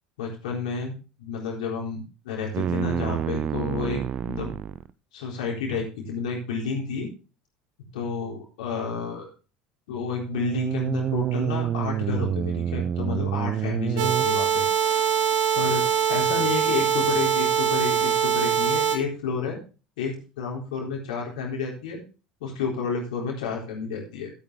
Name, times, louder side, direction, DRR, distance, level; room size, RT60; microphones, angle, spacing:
voice 1, 0.2-4.5 5.1-7.1 7.9-9.3 9.9-15.2 15.6-15.8 16.1-19.6 20.0-22.0 22.4-24.3, left 5 dB, 65° left, -1 dB, 3.9 m, -30 dB
sound 1, 2.5-4.9 10.2-14.2, right 9 dB, 35° right, 0.6 m, -28 dB
sound 2, 14.0-19.0, right 8 dB, 55° right, 1.7 m, -23 dB
13.5 x 8.6 x 3.4 m, 0.33 s
figure-of-eight pair, 70°, 4 cm